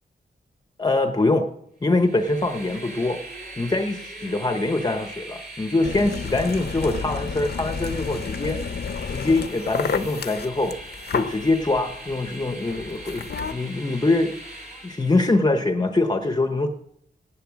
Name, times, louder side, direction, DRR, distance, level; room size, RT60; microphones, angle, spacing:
voice 1, 0.8-1.5 1.8-3.2 3.6-8.8 9.1-10.8 11.1-14.4 14.8-16.7, left 2 dB, 20° left, 6 dB, 0.8 m, -23 dB
Train, 1.8-15.3, right 1 dB, 55° right, 3.4 m, -41 dB
sound 1, 5.8-13.5, left 6 dB, 60° left, 0.7 m, -31 dB
17.0 x 10.5 x 6.3 m, 0.75 s
wide cardioid pair, 170°, 19 cm